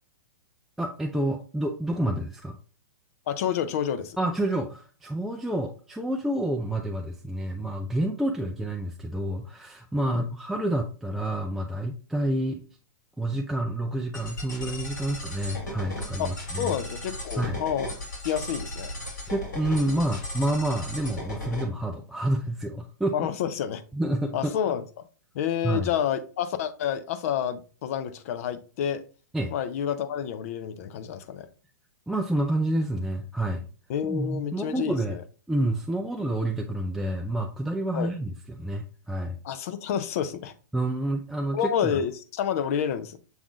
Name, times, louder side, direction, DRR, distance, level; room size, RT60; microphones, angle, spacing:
voice 1, 0.8-2.6 4.2-12.6 13.2-16.7 17.4-17.6 19.3-23.3 23.9-24.5 25.6-25.9 29.3-29.5 32.1-33.7 34.1-35.2 35.5-39.4 40.7-41.9, right 1 dB, 5° right, 1 dB, 0.3 m, -28 dB
voice 2, 3.3-4.2 10.1-10.3 16.2-16.3 16.6-17.9 18.2-18.9 23.1-23.8 24.3-24.8 25.3-29.0 29.5-31.5 33.9-35.2 37.9-38.1 39.4-40.5 41.5-43.2, left 9 dB, 50° left, 11 dB, 0.5 m, -29 dB
sound 1, 14.1-21.6, left 1 dB, 80° left, 2.5 m, -36 dB
6.2 x 3.5 x 2.4 m, 0.38 s
hypercardioid pair, 115°, 10 cm